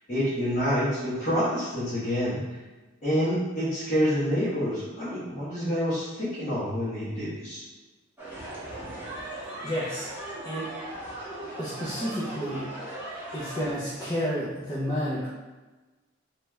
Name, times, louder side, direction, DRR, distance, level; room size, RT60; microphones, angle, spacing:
voice 1, 0.1-2.6 3.0-7.6, equal, 35° left, -13 dB, 1.2 m, -27 dB
sound 1, 8.2-13.7, right 1 dB, 10° right, 0.7 m, -38 dB
voice 2, 9.6-10.1 10.4-10.7 11.6-12.7 13.3-15.3, equal, 20° left, -8 dB, 0.5 m, -30 dB
3.1 x 2.3 x 3.1 m, 1.2 s
head